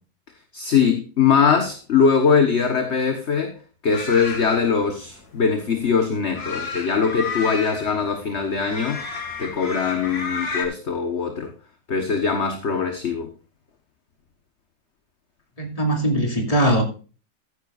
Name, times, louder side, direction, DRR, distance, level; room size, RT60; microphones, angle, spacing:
voice 1, 0.5-3.6 3.8-9.0 9.4-11.5 11.9-13.3, left 6 dB, 45° left, 1.6 m, -21 dB
sound 1, 3.9-10.7, left 4 dB, 75° left, 2.8 m, -32 dB
voice 2, 15.6-16.8, right 1 dB, 20° left, 2.8 m, -20 dB
15.0 x 10.0 x 2.5 m
omnidirectional pair, 1.7 m